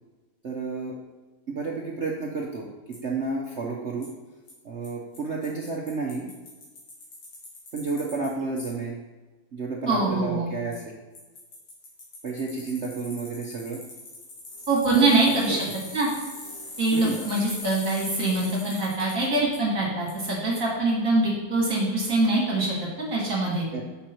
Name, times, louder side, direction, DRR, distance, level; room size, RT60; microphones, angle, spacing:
voice 1, 0.4-1.0 1.5-4.1 4.6-6.3 7.7-9.0 9.5-11.0 12.2-13.8 15.0-15.6 16.9-17.2 23.7-23.8, right 4 dB, 65° right, -2 dB, 0.6 m, -31 dB
Bicycle, 2.9-3.0 4.0-4.1 4.5-4.6 4.8-4.9 5.1-5.2 5.4-8.3 8.6-8.7 10.7-10.8 11.1-19.6 20.1-20.2, left 2 dB, 75° left, 2.7 m, -42 dB
voice 2, 9.9-10.5 14.7-15.6 15.9-16.1 16.8-23.6, right 2 dB, 40° right, -4 dB, 2.4 m, -24 dB
7.1 x 6.2 x 4.5 m, 1.2 s
omnidirectional pair, 2.4 m